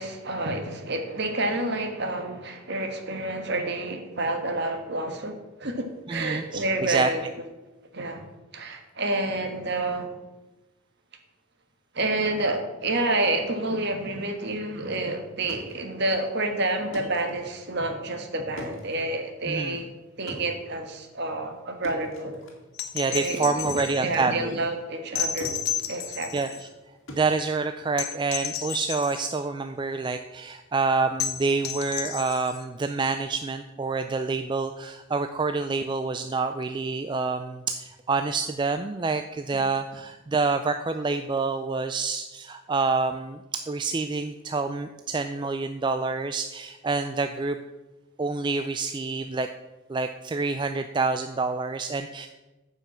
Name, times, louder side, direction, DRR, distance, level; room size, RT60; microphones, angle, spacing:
voice 1, 0.0-7.2 7.9-8.2 8.5-10.1 11.9-19.9 20.2-22.3 23.1-25.5 25.9-26.4, right 2 dB, 50° right, 5 dB, 1.4 m, -29 dB
voice 2, 6.1-7.1 19.5-19.8 22.9-24.5 26.3-26.7 27.1-47.6 48.2-49.5 49.9-52.3, right 4 dB, 20° right, 8 dB, 0.3 m, -27 dB
sound 1, 15.2-25.1 25.4-28.4, equal, 65° left, 2.3 m, -44 dB
sound 2, 22.7-24.0 25.2-26.7 28.0-29.3 31.2-32.6 34.5-34.6, left 9 dB, 50° left, 0.8 m, -32 dB
9.3 x 5.6 x 7.3 m, 1.1 s
head